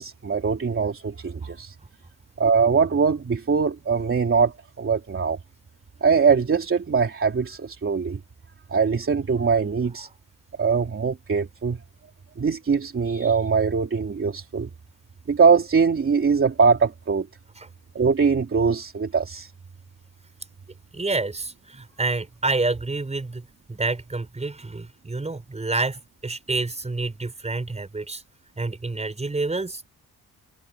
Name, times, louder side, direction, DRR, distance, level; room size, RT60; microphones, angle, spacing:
voice 1, 0.0-1.7 2.4-5.4 6.0-8.2 8.7-10.1 10.6-11.8 12.4-14.7 15.3-17.3 17.9-19.5, right 5 dB, 35° right, 3.2 m, -22 dB
voice 2, 20.9-28.2 28.6-29.9, right 3 dB, 15° right, 5.9 m, -28 dB
wide cardioid pair, 165°, 37 cm